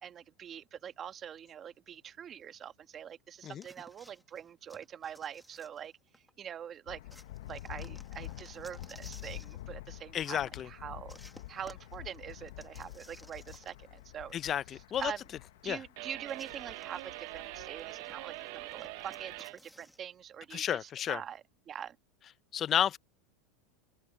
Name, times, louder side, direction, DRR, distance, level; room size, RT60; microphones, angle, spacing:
voice 1, 0.0-5.9 6.4-7.0 7.5-11.2 11.5-14.3 15.0-15.2 15.6-22.0, right 9 dB, 30° right, 1.5 m, -44 dB
sound 1, 3.6-6.3 7.1-9.6 11.1-14.0 14.3-14.4 16.3-20.0, equal, ahead, 2.0 m, -57 dB
Thunder, 6.9-19.4, left 15 dB, 80° left, 0.9 m, -48 dB
voice 2, 10.1-10.7 14.3-15.1 15.7-15.8 20.5-21.2 22.5-23.0, left 10 dB, 30° left, 0.6 m, -31 dB
sound 2, 16.0-19.6, right 22 dB, 65° right, 1.0 m, -44 dB
supercardioid pair, 125°, 0 cm